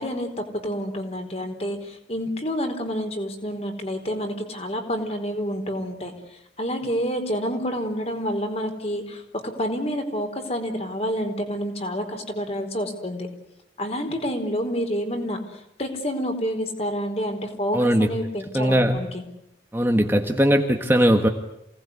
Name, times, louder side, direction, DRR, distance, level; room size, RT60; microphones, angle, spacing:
voice 1, 0.0-6.1 6.6-13.3 13.8-15.4 15.8-19.2, equal, 35° left, 5 dB, 4.4 m, -28 dB
voice 2, 17.7-18.1 18.5-19.0 19.7-21.3, equal, 10° right, 3 dB, 1.6 m, -19 dB
28.0 x 19.0 x 9.8 m, 0.82 s
head